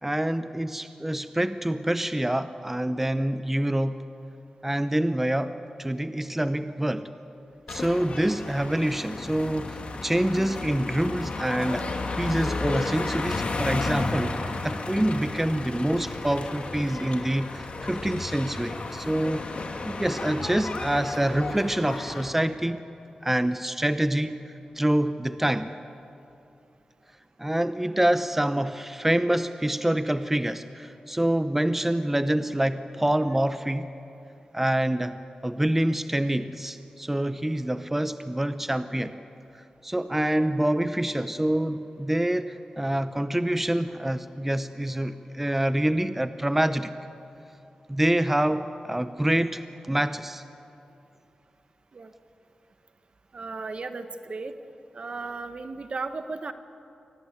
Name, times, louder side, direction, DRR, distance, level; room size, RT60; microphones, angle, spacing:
voice 1, 0.0-4.0 4.6-5.5 5.8-7.1 7.7-14.4 14.6-19.5 19.8-22.8 23.2-25.7 27.4-33.9 34.5-35.1 35.4-39.2 39.8-46.9 47.9-50.4, right 1 dB, 10° right, 11 dB, 0.8 m, -26 dB
sound 1, 7.7-22.3, left 3 dB, 60° left, 2.3 m, -33 dB
voice 2, 53.3-54.6 54.9-56.5, right 3 dB, 55° right, 9 dB, 1.4 m, -35 dB
24.5 x 18.0 x 8.5 m, 2.7 s
cardioid pair, 60°, 2 cm